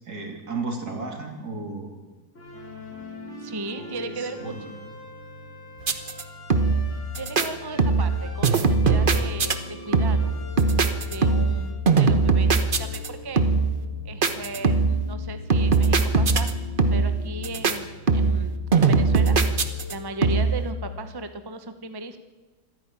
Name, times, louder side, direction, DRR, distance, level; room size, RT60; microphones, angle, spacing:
voice 1, 0.1-1.9 3.7-4.7, right 3 dB, 65° right, 3 dB, 3.6 m, -34 dB
sound 1, 2.3-20.0, equal, 45° left, 5.3 m, -43 dB
voice 2, 3.4-4.6 7.2-10.3 11.1-13.4 14.0-16.5 16.9-22.2, right 2 dB, 15° right, 8 dB, 1.0 m, -36 dB
sound 2, 5.8-6.2 6.5-6.9 7.2-7.5 7.8-8.2 8.4-9.6 9.9-10.3 10.6-11.6 11.9-13.1 13.4-13.7 14.2-15.0 15.5-16.5 16.8-17.2 17.4-17.8 18.1-18.5 18.7-19.9 20.2-20.6, right 4 dB, 35° right, 1.2 m, -20 dB
26.0 x 10.5 x 9.8 m, 1.2 s
omnidirectional pair, 1.8 m